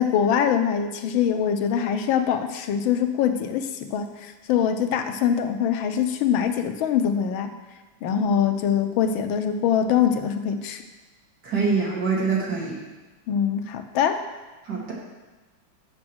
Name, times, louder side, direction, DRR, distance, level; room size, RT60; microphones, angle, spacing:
voice 1, 0.0-7.5 8.0-10.8 13.3-14.2, left 8 dB, 85° left, 7 dB, 1.4 m, -23 dB
voice 2, 11.4-12.8 14.7-14.9, right 4 dB, 55° right, -4 dB, 2.4 m, -24 dB
7.4 x 6.2 x 6.1 m, 1.2 s
omnidirectional pair, 2.2 m